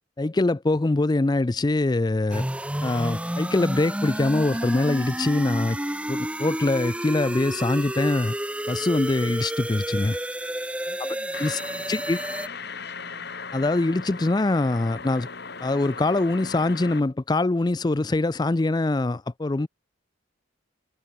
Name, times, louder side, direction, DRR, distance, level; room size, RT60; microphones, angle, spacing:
voice 1, 0.2-2.5 2.8-5.8 6.1-8.3 8.7-10.2 11.4-11.6 11.9-12.2 13.5-15.3 15.6-19.7, left 2 dB, 20° left, 0.4 m, -23 dB
sound 1, 2.3-12.5, right 1 dB, 5° right, 1.2 m, -30 dB
voice 2, 10.9-13.4, right 1 dB, 65° right, 6.6 m, -53 dB
sound 2, 11.3-17.0, left 5 dB, 55° left, 2.8 m, -38 dB
head